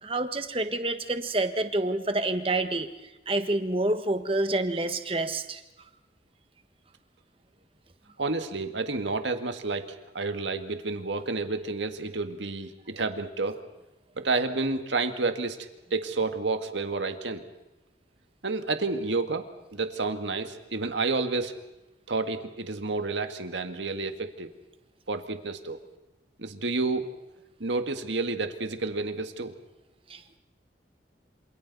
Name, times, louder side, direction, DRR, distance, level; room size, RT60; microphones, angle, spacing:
voice 1, 0.0-2.9 3.3-5.6 30.1-30.4, right 2 dB, 30° right, 8 dB, 1.4 m, -28 dB
voice 2, 8.2-13.6 14.2-15.6 15.9-17.4 18.4-19.5 19.7-21.5 22.1-24.5 25.1-25.8 26.4-27.1 27.6-29.5, right 3 dB, 85° right, 7 dB, 1.8 m, -30 dB
27.5 x 27.0 x 4.1 m, 1.0 s
head